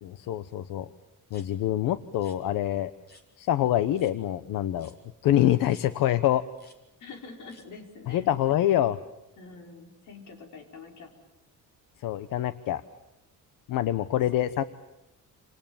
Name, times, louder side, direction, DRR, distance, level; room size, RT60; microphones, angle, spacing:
voice 1, 0.0-0.9 1.3-2.9 3.4-4.9 5.2-6.4 8.1-9.0 12.0-12.8 13.7-14.6, left 12 dB, 85° left, 14 dB, 1.0 m, -25 dB
sound 1, 1.3-1.5 2.1-2.4 3.1-3.3 3.9-4.1 4.8-5.0 5.7-5.9 6.5-6.8 7.5-7.7, left 2 dB, 30° left, 3.3 m, -55 dB
voice 2, 7.0-8.3 9.4-11.1 14.1-14.5, left 4 dB, 65° left, 3 dB, 5.1 m, -46 dB
29.0 x 27.5 x 7.3 m, 0.92 s
cardioid pair, 175°, 33 cm